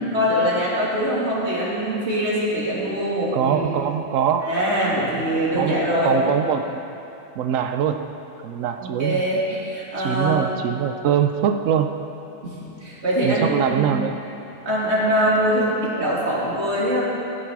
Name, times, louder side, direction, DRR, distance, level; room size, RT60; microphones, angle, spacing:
voice 1, 0.1-3.8 4.4-6.2 8.8-10.4 12.4-13.9 14.6-17.0, equal, 60° right, -6 dB, 3.1 m, -23 dB
voice 2, 3.3-4.5 5.5-6.8 7.4-8.1 8.4-9.2 10.0-11.9 13.2-14.2, right 8 dB, 85° right, 7 dB, 1.0 m, -23 dB
16.5 x 10.5 x 4.7 m, 3.0 s
omnidirectional pair, 1.3 m